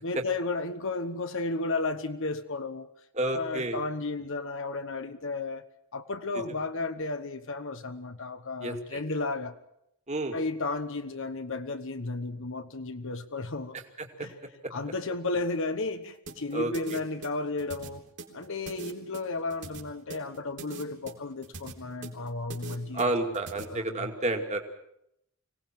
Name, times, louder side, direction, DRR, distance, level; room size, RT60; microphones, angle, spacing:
voice 1, 0.0-2.9 3.3-5.6 5.9-9.6 10.3-13.8 14.2-14.3 14.7-18.0 18.3-23.1 23.6-24.1, left 3 dB, 60° left, 1.2 m, -33 dB
voice 2, 3.1-3.8 8.6-9.0 10.1-10.4 16.5-17.0 22.9-24.6, right 2 dB, 30° right, 2.5 m, -30 dB
sound 1, 16.3-23.6, right 3 dB, 55° right, 3.8 m, -42 dB
25.0 x 18.5 x 7.6 m
head